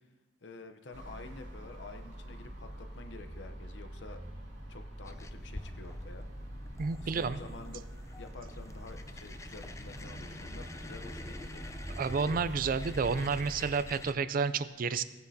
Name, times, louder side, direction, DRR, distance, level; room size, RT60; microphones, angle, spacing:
voice 1, 0.4-4.2 4.7-6.3 7.0-7.8 8.2-11.7, left 3 dB, 70° left, 7 dB, 0.8 m, -49 dB
sound 1, 0.9-13.7, equal, 85° right, 2.3 m, -45 dB
sound 2, 5.0-14.1, left 2 dB, 15° left, 0.4 m, -47 dB
voice 2, 6.8-7.4 12.0-15.0, right 5 dB, 50° right, 14 dB, 0.4 m, -30 dB
17.5 x 9.4 x 2.8 m, 1.3 s
head